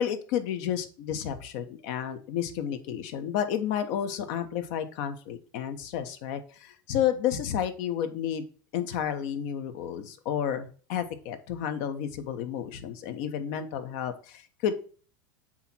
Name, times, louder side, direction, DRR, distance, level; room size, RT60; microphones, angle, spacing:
voice 1, 0.0-8.4 8.7-14.7, left 9 dB, 60° left, 8 dB, 1.2 m, -31 dB
7.9 x 3.0 x 6.1 m, 0.40 s
supercardioid pair, 135°, 11 cm